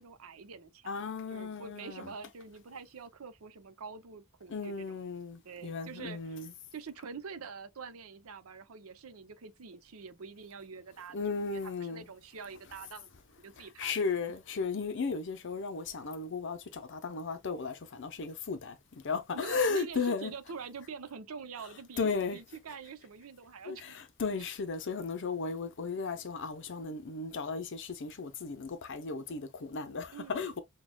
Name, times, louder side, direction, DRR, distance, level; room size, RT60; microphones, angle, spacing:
voice 1, 0.0-1.0 1.3-5.0 5.4-6.4 6.7-11.2 11.5-13.9 19.3-24.0 30.1-30.6, right 5 dB, 85° right, 0.6 m, -46 dB
voice 2, 0.9-2.1 4.5-6.5 11.1-12.0 13.8-18.8 19.0-20.3 22.0-22.4 23.7-30.6, left 4 dB, 60° left, 0.6 m, -35 dB
6.1 x 2.2 x 2.2 m
head